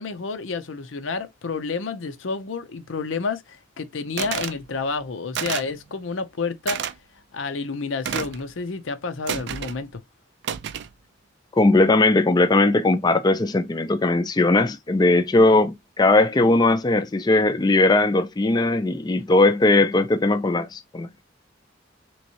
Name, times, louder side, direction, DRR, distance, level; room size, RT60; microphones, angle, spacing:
voice 1, 0.0-3.4 3.8-6.8 7.3-10.0, left 4 dB, 90° left, 0.6 m, -29 dB
sound 1, 4.2-4.6 5.3-5.8 6.7-6.9 8.0-8.4 9.3-9.8 10.4-10.9, right 8 dB, 65° right, 0.4 m, -29 dB
voice 2, 11.5-21.3, left 2 dB, 20° left, 0.4 m, -19 dB
3.5 x 3.1 x 2.7 m
head